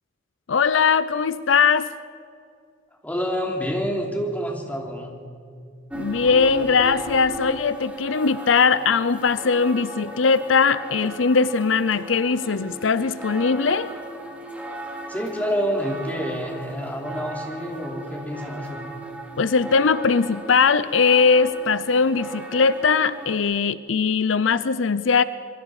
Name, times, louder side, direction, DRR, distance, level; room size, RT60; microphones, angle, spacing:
voice 1, 0.5-1.9 5.9-13.9 19.4-25.2, left 5 dB, 80° left, 15 dB, 0.6 m, -20 dB
voice 2, 3.0-5.2 15.1-18.9, equal, 10° left, 0 dB, 3.1 m, -28 dB
sound 1, 5.9-23.4, right 1 dB, 5° right, 2.7 m, -37 dB
26.0 x 23.0 x 4.9 m, 2.4 s
head